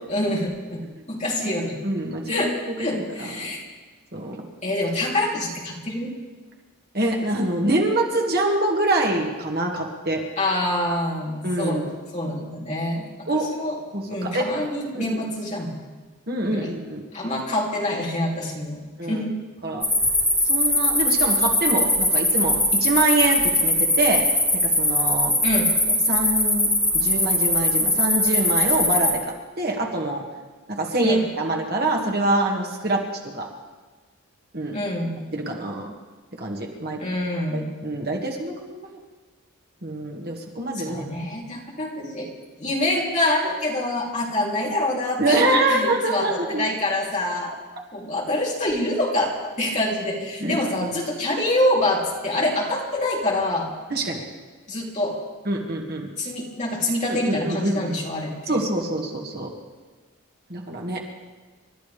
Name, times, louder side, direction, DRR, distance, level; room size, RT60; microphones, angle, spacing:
voice 1, 0.1-0.8 1.1-1.8 2.1-3.7 4.6-6.1 10.4-11.8 12.1-13.8 14.1-15.9 16.5-16.7 17.1-18.8 19.1-19.3 25.4-25.7 31.0-31.2 34.7-35.2 37.0-37.7 40.7-42.3 42.6-47.5 47.9-53.7 54.7-55.2 56.2-58.6, left 1 dB, 30° left, -4 dB, 3.2 m, -26 dB
voice 2, 1.8-2.5 2.9-3.5 4.1-4.4 6.9-10.2 11.4-11.9 13.3-13.5 13.9-14.5 14.9-15.2 16.3-17.1 19.0-19.2 19.6-19.9 20.4-24.3 24.6-25.3 26.1-29.3 29.6-30.2 30.7-33.0 33.3-33.5 34.5-34.8 35.3-35.9 36.3-37.0 37.5-39.0 39.8-41.1 45.2-46.7 50.4-50.9 53.9-54.2 55.5-56.1 57.1-57.7 58.5-59.5 60.5-61.0, right 2 dB, 45° right, 1 dB, 2.0 m, -25 dB
sound 1, 19.8-29.1, left 1 dB, 5° left, 3.5 m, -21 dB
29.5 x 13.0 x 3.4 m, 1.3 s
head